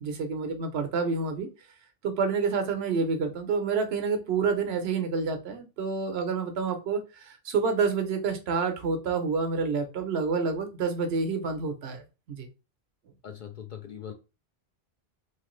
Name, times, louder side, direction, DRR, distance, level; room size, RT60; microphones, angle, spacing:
voice 1, 0.0-1.5 2.0-7.0 7.3-12.0 12.3-12.5, right 5 dB, 75° right, 7 dB, 0.9 m, -28 dB
voice 2, 13.2-14.1, left 9 dB, 55° left, 5 dB, 0.6 m, -41 dB
3.1 x 2.8 x 3.0 m, 0.30 s
omnidirectional pair, 1.1 m